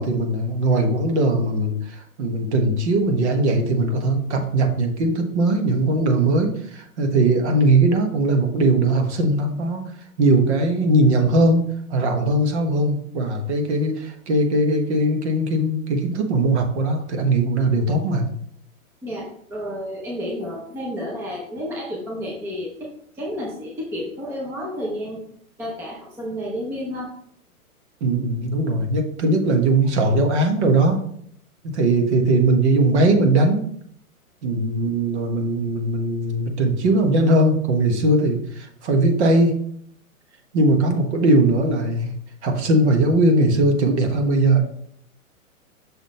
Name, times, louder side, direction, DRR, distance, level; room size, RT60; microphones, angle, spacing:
voice 1, 0.0-9.8 10.2-18.3 28.0-31.0 31.6-33.7 34.4-39.6 40.5-42.1 42.4-44.6, right 2 dB, 50° right, 4 dB, 1.3 m, -20 dB
voice 2, 19.0-25.2 25.6-27.1, equal, 5° right, -3 dB, 0.6 m, -31 dB
6.2 x 3.7 x 4.2 m, 0.66 s
hypercardioid pair, 135°, 43 cm